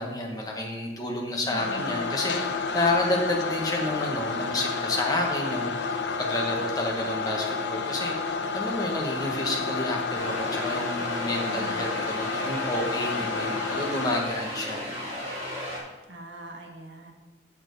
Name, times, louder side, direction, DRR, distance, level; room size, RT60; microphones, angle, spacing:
voice 1, 0.0-5.7 6.2-14.8, left 1 dB, 20° left, 0 dB, 1.2 m, -30 dB
voice 2, 1.5-2.3 11.4-11.9 16.1-17.1, right 1 dB, 80° right, 2 dB, 1.4 m, -42 dB
sound 1, 1.6-14.2, left 4 dB, 75° left, 0.7 m, -30 dB
sound 2, 10.1-15.8, equal, 35° right, 2.6 m, -35 dB
8.3 x 7.1 x 4.0 m, 1.1 s
head